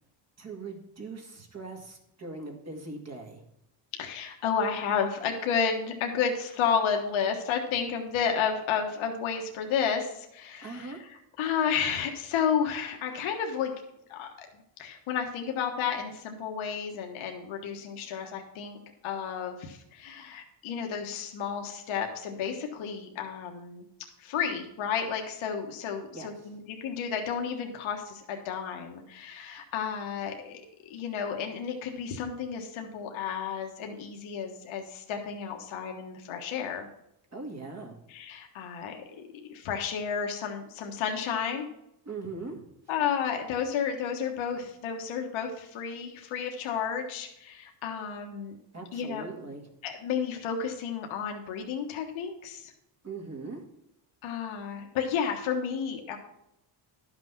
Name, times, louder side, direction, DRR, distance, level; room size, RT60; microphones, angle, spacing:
voice 1, 0.4-3.4 10.6-11.0 26.1-26.5 37.3-38.0 42.1-42.6 48.7-49.6 53.0-53.6, right 3 dB, 35° right, 2 dB, 2.1 m, -40 dB
voice 2, 3.9-11.0 11.4-13.7 14.1-14.5 14.8-18.8 19.0-23.8 24.2-30.6 30.9-36.9 38.1-41.7 42.9-48.6 48.9-49.2 49.8-52.7 54.2-56.2, left 7 dB, 80° left, 3 dB, 1.4 m, -32 dB
11.5 x 6.1 x 5.8 m, 0.82 s
cardioid pair, 115°, 47 cm